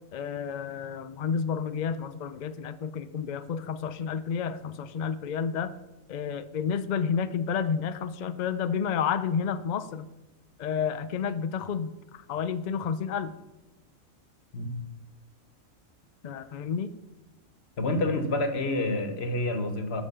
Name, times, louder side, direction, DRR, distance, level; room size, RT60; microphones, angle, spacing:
voice 1, 0.1-5.7 6.1-10.1 10.6-13.3 16.2-16.9, left 7 dB, 70° left, 12 dB, 0.4 m, -30 dB
voice 2, 17.8-20.0, left 2 dB, 50° left, 8 dB, 1.3 m, -28 dB
11.5 x 5.1 x 6.7 m, 1.0 s
omnidirectional pair, 1.4 m